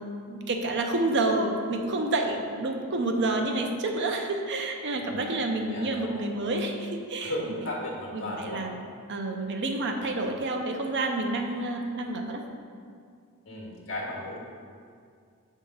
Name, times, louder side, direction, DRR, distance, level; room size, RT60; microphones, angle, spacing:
voice 1, 0.0-7.3 8.1-8.8 9.1-12.4, right 2 dB, 55° right, 3 dB, 0.7 m, -29 dB
voice 2, 5.0-5.3 5.7-6.3 7.2-8.6 11.2-11.4 13.5-14.4, left 1 dB, 65° left, -3 dB, 1.8 m, -36 dB
7.3 x 3.6 x 5.4 m, 2.2 s
head